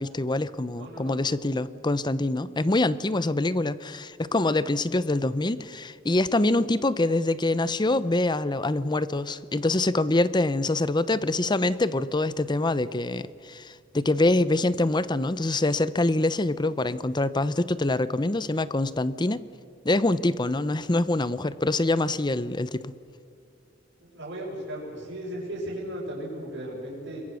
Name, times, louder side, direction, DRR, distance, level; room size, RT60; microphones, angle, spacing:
voice 1, 0.0-19.4 19.8-22.9, left 2 dB, 25° left, 0.7 m, -25 dB
voice 2, 0.8-1.2 24.1-27.2, right 1 dB, 65° right, 6.8 m, -36 dB
27.0 x 22.5 x 6.4 m
head